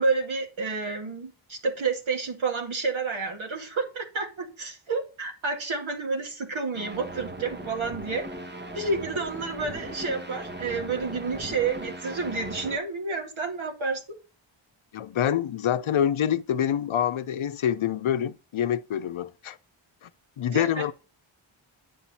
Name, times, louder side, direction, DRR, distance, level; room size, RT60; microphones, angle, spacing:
voice 1, 0.0-8.3 8.7-14.0 20.5-20.9, right 4 dB, 75° right, 2.4 m, -30 dB
sound 1, 6.7-12.8, right 1 dB, 20° right, 1.2 m, -38 dB
voice 2, 14.9-19.6 20.0-20.1 20.4-20.9, left 9 dB, 80° left, 0.8 m, -26 dB
8.9 x 5.2 x 4.2 m
cardioid pair, 55°, 48 cm